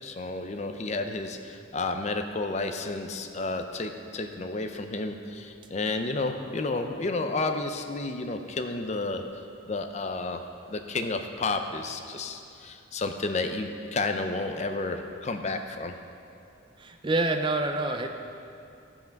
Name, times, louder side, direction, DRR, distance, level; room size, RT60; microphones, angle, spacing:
voice 1, 0.0-9.2 9.7-10.4 10.7-15.9, left 3 dB, 35° left, 6 dB, 0.5 m, -31 dB
voice 2, 16.8-18.1, right 2 dB, 25° right, 6 dB, 0.4 m, -27 dB
14.0 x 5.8 x 5.2 m, 2.5 s
head